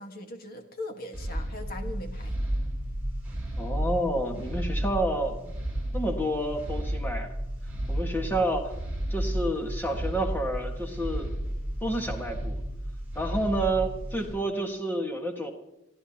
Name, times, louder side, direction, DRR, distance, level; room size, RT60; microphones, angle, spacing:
voice 1, 0.0-2.4, left 1 dB, 45° left, 5 dB, 1.5 m, -40 dB
sound 1, 1.1-14.3, right 1 dB, 10° right, 7.5 m, -32 dB
voice 2, 3.6-5.5 5.9-7.3 7.9-8.7 9.1-11.3 11.8-12.6 13.1-15.5, right 1 dB, 10° left, 3 dB, 1.6 m, -29 dB
29.5 x 15.0 x 2.9 m, 0.88 s
head